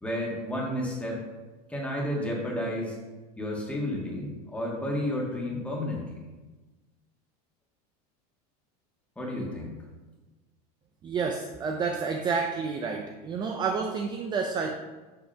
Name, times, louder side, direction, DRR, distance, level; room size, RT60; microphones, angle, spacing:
voice 1, 0.0-1.2 1.7-3.0 3.4-6.2 9.1-9.8, left 1 dB, 5° left, -3 dB, 1.6 m, -31 dB
voice 2, 11.0-14.8, right 5 dB, 20° right, 3 dB, 0.5 m, -29 dB
7.7 x 3.5 x 5.5 m, 1.2 s
supercardioid pair, 150°, 20 cm